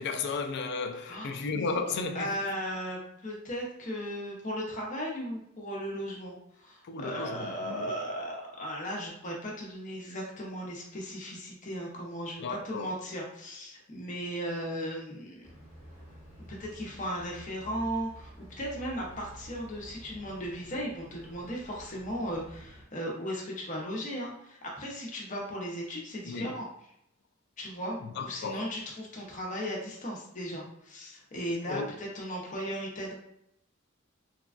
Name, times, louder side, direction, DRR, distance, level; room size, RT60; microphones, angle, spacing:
voice 1, 0.0-2.6 6.8-8.0 12.4-12.9 26.2-26.6 28.0-28.7 31.7-31.9, left 4 dB, 55° left, 0.3 m, -34 dB
voice 2, 2.1-15.5 16.5-26.7 27.6-33.1, equal, 40° left, 0.8 m, -36 dB
sound 1, 15.4-22.8, right 1 dB, 30° right, 1.1 m, -50 dB
3.3 x 2.2 x 2.4 m
head